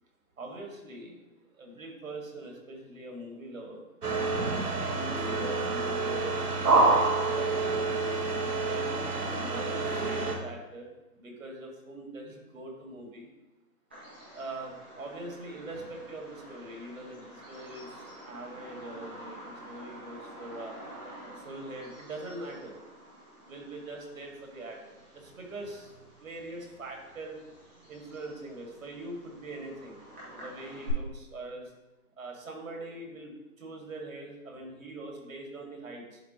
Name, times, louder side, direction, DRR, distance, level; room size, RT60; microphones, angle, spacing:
voice 1, 0.4-1.2 1.5-3.8 4.8-8.0 8.6-10.9 11.2-13.3 14.3-20.7 21.4-22.8 23.4-25.9 26.2-27.4 27.9-30.0 30.3-31.7 32.2-36.2, right 2 dB, 60° right, 1 dB, 2.0 m, -42 dB
sound 1, 4.0-10.3, right 3 dB, 80° right, 1.4 m, -27 dB
Bird vocalization bird call bird song, 13.9-30.9, right 1 dB, 10° right, 0.7 m, -49 dB
11.0 x 4.0 x 2.9 m, 1.1 s
hypercardioid pair, 160°, 45 cm